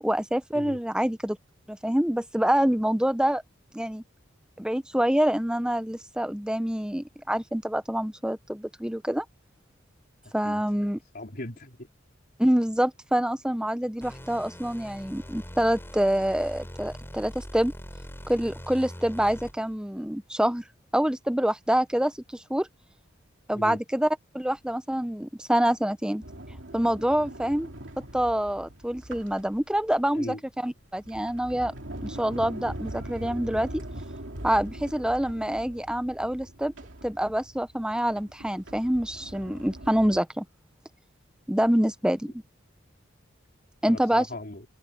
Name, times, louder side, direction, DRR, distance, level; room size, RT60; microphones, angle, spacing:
voice 1, 0.0-1.4 1.7-3.4 3.7-4.0 4.6-9.2 10.3-11.0 12.4-17.7 18.3-20.6 20.9-22.7 23.5-24.1 24.3-26.2 26.7-27.7 28.1-31.7 32.0-33.8 34.4-36.7 37.0-40.4 41.5-42.3 43.8-44.3, equal, 5° right, 0.8 m, -26 dB
voice 2, 11.1-11.9 23.5-23.8 30.1-30.4 43.9-44.6, left 1 dB, 50° left, 4.0 m, -38 dB
sound 1, 14.0-19.8, equal, 10° left, 5.4 m, -42 dB
Sliding door, 26.2-30.0 30.7-40.2, right 1 dB, 65° right, 3.0 m, -42 dB
open air
head